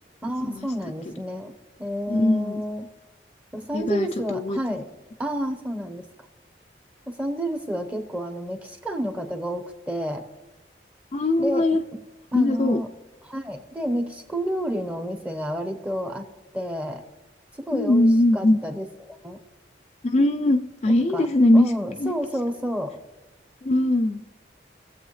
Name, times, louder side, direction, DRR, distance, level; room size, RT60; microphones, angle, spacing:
voice 1, 0.2-1.5 1.8-2.9 3.5-4.8 5.2-6.1 7.1-10.2 11.4-11.7 12.3-12.9 13.3-16.3 16.5-17.0 17.5-18.1 18.3-19.4 21.1-21.3 21.5-23.0, equal, 10° right, 5 dB, 0.9 m, -29 dB
voice 2, 2.1-2.6 3.7-4.8 11.1-11.8 12.3-12.8 17.7-18.6 20.0-21.7 22.0-22.1 23.6-24.2, left 1 dB, 35° left, 6 dB, 0.4 m, -21 dB
21.5 x 7.7 x 3.2 m, 1.1 s
head